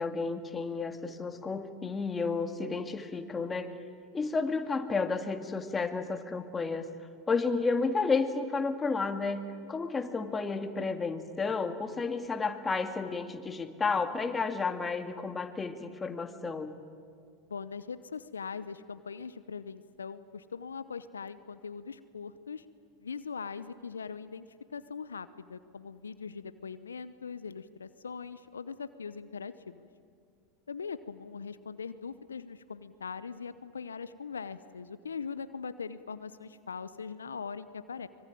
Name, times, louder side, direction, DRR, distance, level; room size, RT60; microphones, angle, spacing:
voice 1, 0.0-3.7 4.1-6.9 7.3-16.7, left 4 dB, 20° left, 7 dB, 2.3 m, -32 dB
voice 2, 17.5-22.7 23.0-29.9 30.7-38.1, left 5 dB, 85° left, 14 dB, 0.8 m, -41 dB
25.0 x 22.5 x 9.2 m, 2.4 s
hypercardioid pair, 85°, 0 cm